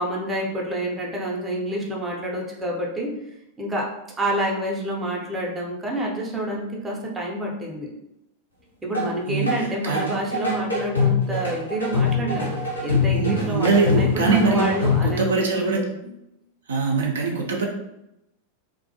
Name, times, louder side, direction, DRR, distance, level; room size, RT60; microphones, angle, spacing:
voice 1, 0.0-3.1 3.6-3.9 4.2-7.9 8.8-12.5 12.8-15.8, right 1 dB, 15° right, -2 dB, 0.5 m, -28 dB
sound 1, 8.9-9.1 9.5-15.2, left 4 dB, 85° left, 0.7 m, -24 dB
voice 2, 9.3-10.1 13.1-14.6 15.0-16.1 16.7-17.7, right 3 dB, 65° right, 0 dB, 0.4 m, -22 dB
2.3 x 2.1 x 2.6 m, 0.86 s
figure-of-eight pair, 90°, 0 cm